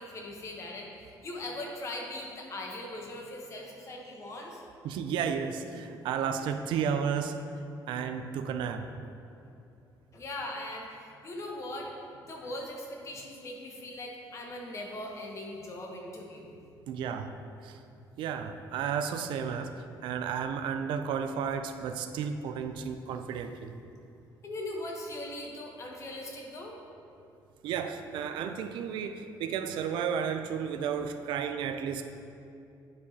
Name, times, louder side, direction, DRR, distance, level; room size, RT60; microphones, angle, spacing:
voice 1, 0.0-4.6 9.4-9.5 10.1-10.9 11.2-11.9 12.2-16.5 24.4-26.8, left 1 dB, 40° left, 0 dB, 1.0 m, -40 dB
voice 2, 4.8-7.4 7.9-8.9 12.4-12.6 16.9-17.3 17.6-17.8 18.2-19.7 20.0-23.7 27.6-32.0, right 7 dB, 85° right, 7 dB, 0.4 m, -33 dB
9.4 x 4.8 x 2.8 m, 2.6 s
cardioid pair, 135°, 8 cm